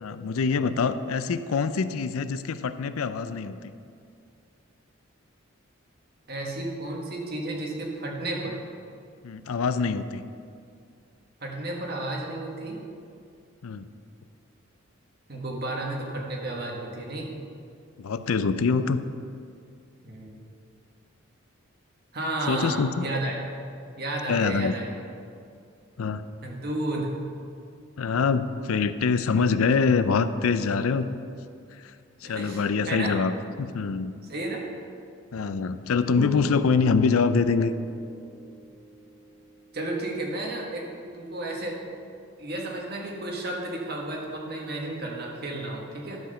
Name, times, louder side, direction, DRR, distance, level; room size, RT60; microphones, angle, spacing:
voice 1, 0.0-3.6 9.2-10.2 13.6-13.9 18.0-19.0 22.5-23.1 24.3-24.7 26.0-26.2 28.0-31.1 32.2-34.1 35.3-37.7, left 5 dB, 80° left, 12 dB, 0.4 m, -24 dB
voice 2, 6.3-8.6 11.4-12.8 15.3-17.3 20.0-20.4 22.1-23.4 24.0-25.0 26.4-27.1 32.2-33.2 34.3-34.6 39.7-40.8 41.1-41.8 42.4-46.2, right 2 dB, 45° right, -1 dB, 1.6 m, -32 dB
sound 1, 36.1-40.6, equal, 5° left, 0.3 m, -41 dB
12.0 x 4.9 x 6.6 m, 2.4 s
head